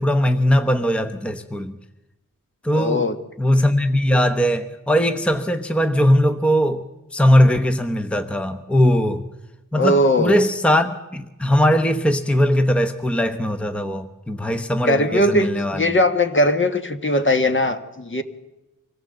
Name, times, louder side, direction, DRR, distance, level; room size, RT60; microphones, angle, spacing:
voice 1, 0.0-1.8 2.6-3.1 3.4-6.8 7.1-9.2 9.7-15.8, equal, 5° left, 0.9 m, -19 dB
voice 2, 2.7-3.2 9.7-10.4 14.9-18.2, left 1 dB, 35° left, 1.5 m, -19 dB
25.0 x 17.0 x 7.9 m
wide cardioid pair, 125°, 32 cm